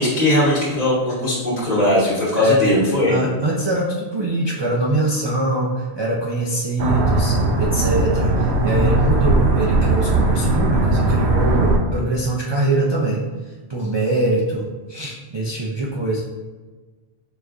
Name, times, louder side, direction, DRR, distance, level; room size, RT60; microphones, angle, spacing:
voice 1, 0.0-3.2, left 1 dB, 35° left, -7 dB, 1.4 m, -19 dB
voice 2, 2.4-2.7 3.1-13.2 13.7-16.2, right 2 dB, 45° right, -3 dB, 0.3 m, -23 dB
sound 1, 6.8-11.8, right 2 dB, 75° right, 0.9 m, -18 dB
4.9 x 2.5 x 3.4 m, 1.3 s
omnidirectional pair, 1.2 m